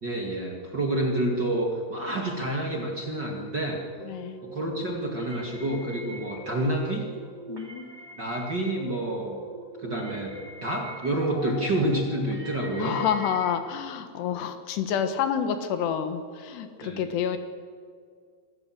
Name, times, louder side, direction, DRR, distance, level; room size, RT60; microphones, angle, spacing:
voice 1, 0.0-3.8 4.4-7.1 8.2-9.4 9.8-10.3 10.6-13.0 16.8-17.0, right 1 dB, 35° right, 0 dB, 2.0 m, -28 dB
voice 2, 4.0-4.4 7.5-7.9 12.7-17.4, left 8 dB, 75° left, 9 dB, 3.4 m, -28 dB
sound 1, 4.0-13.5, right 1 dB, 10° right, 2.7 m, -43 dB
26.5 x 15.0 x 7.9 m, 2.1 s
omnidirectional pair, 4.9 m